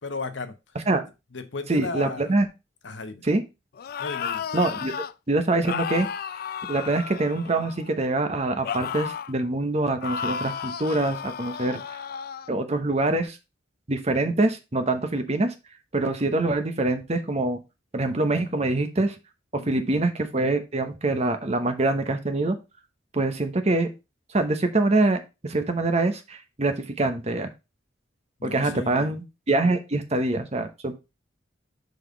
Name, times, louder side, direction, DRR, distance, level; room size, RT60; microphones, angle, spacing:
voice 1, 0.0-0.8 1.3-2.3 2.8-3.2 4.0-4.4 19.5-19.9 28.4-29.2, left 3 dB, 75° left, 0.9 m, -35 dB
voice 2, 1.7-2.5 3.3-3.4 4.5-4.9 5.3-6.1 6.7-11.8 12.5-13.4 13.9-15.5 15.9-17.6 17.9-19.1 19.5-22.6 23.1-23.9 24.3-27.5 28.4-30.9, right 2 dB, 35° right, 0.9 m, -24 dB
sound 1, 3.8-5.1 5.7-7.9 8.6-9.4 10.0-12.5, left 7 dB, 50° left, 0.3 m, -33 dB
5.2 x 4.0 x 5.1 m
head